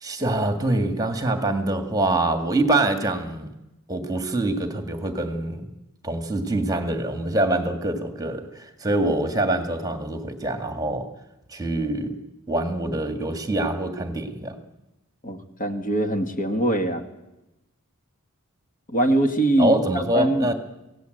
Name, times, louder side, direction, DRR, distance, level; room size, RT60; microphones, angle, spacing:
voice 1, 0.0-3.5 3.9-5.7 6.0-11.1 11.5-12.2 12.5-14.6 19.6-20.5, right 2 dB, 15° right, 6 dB, 2.1 m, -25 dB
voice 2, 15.2-17.0 18.9-20.5, right 1 dB, 40° left, 5 dB, 2.1 m, -23 dB
27.0 x 17.5 x 8.0 m, 0.96 s
head